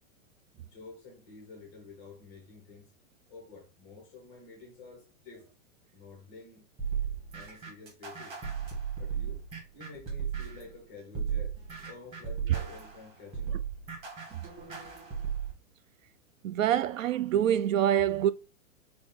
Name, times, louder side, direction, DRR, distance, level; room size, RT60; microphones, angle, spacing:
voice 1, 0.6-2.9 3.3-5.5 5.9-6.6 7.3-8.4 9.0-9.4 9.7-11.6 11.8-13.6, left 4 dB, 5° left, 0.4 m, -50 dB
sound 1, 6.8-10.7 11.1-15.5, right 7 dB, 15° right, 1.0 m, -35 dB
voice 2, 16.4-18.3, right 10 dB, 70° right, 0.5 m, -26 dB
5.1 x 2.3 x 3.9 m
supercardioid pair, 175°, 41 cm